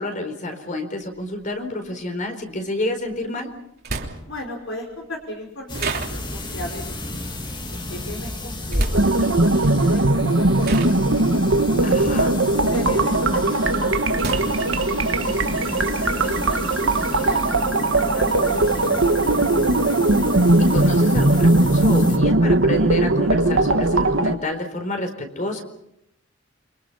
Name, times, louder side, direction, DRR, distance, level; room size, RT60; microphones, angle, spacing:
voice 1, 0.0-3.5 11.8-12.4 20.6-25.6, left 1 dB, 40° left, 6 dB, 4.4 m, -29 dB
sound 1, 1.0-1.1 3.1-3.2 3.8-4.5 5.7-6.6 8.7-9.2 10.1-10.3 10.6-13.0 13.4-14.9, right 2 dB, 50° right, 3.3 m, -29 dB
voice 2, 4.3-7.3 7.7-11.4 12.6-17.5 17.9-20.0, left 1 dB, 75° left, 1 dB, 5.0 m, -37 dB
sound 2, 5.7-22.2, left 1 dB, 25° left, 2.7 m, -32 dB
sound 3, 8.9-24.3, right 2 dB, 70° right, 1.9 m, -19 dB
29.5 x 25.5 x 5.8 m, 0.79 s
head